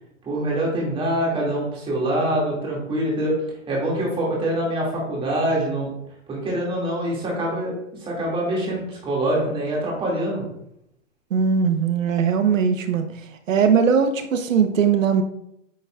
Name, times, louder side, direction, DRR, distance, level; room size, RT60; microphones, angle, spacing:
voice 1, 0.2-3.3 3.7-5.9 6.3-10.4, right 1 dB, 15° right, -3 dB, 2.4 m, -24 dB
voice 2, 11.3-13.1 13.5-15.2, right 6 dB, 80° right, 8 dB, 1.1 m, -19 dB
9.1 x 5.6 x 2.4 m, 0.79 s
hypercardioid pair, 145°, 38 cm